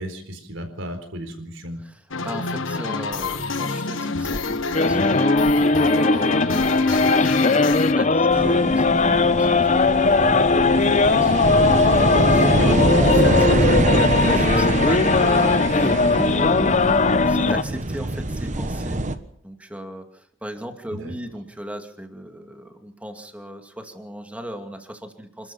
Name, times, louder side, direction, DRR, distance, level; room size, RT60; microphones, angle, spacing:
voice 1, 0.0-1.8 20.9-21.1, equal, 80° right, 7 dB, 4.2 m, -34 dB
voice 2, 1.8-11.5 11.9-16.9 17.3-19.0 19.4-25.5, equal, 5° right, 5 dB, 2.4 m, -36 dB
sound 1, 2.1-7.9, left 4 dB, 85° left, 1.4 m, -28 dB
sound 2, 4.7-17.6, left 3 dB, 35° left, 0.8 m, -18 dB
sound 3, 8.3-19.2, right 2 dB, 40° right, 1.3 m, -24 dB
27.5 x 13.5 x 7.2 m, 0.66 s
head